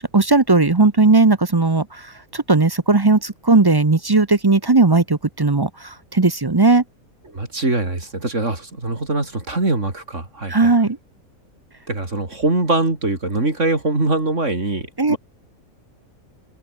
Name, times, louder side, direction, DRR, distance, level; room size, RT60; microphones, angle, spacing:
voice 1, 0.0-6.8 10.5-11.0 15.0-15.2, right 3 dB, 25° right, 0.6 m, -17 dB
voice 2, 7.3-10.7 11.9-15.2, right 2 dB, 55° right, 4.5 m, -22 dB
omnidirectional pair, 1.5 m